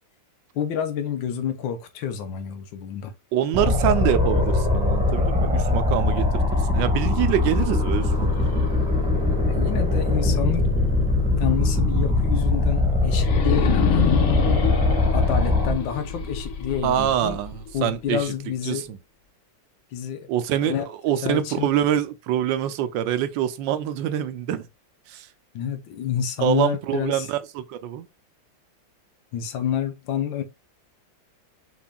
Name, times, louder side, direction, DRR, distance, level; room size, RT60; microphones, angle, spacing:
voice 1, 0.5-3.1 9.5-10.7 11.4-14.3 15.1-17.4 17.7-18.9 19.9-20.3 20.6-21.7 25.5-27.3 29.3-30.4, left 9 dB, 80° left, 1.6 m, -28 dB
voice 2, 3.3-6.4 6.7-8.7 16.8-18.3 18.7-19.0 20.3-20.8 21.0-24.6 25.1-25.3 26.4-28.1, right 11 dB, 85° right, 1.3 m, -25 dB
sound 1, 3.5-15.7, left 2 dB, 5° right, 1.2 m, -21 dB
sound 2, 8.2-11.2 11.6-11.7 13.1-18.2, left 7 dB, 55° left, 1.1 m, -29 dB
6.1 x 3.8 x 2.3 m
omnidirectional pair, 2.0 m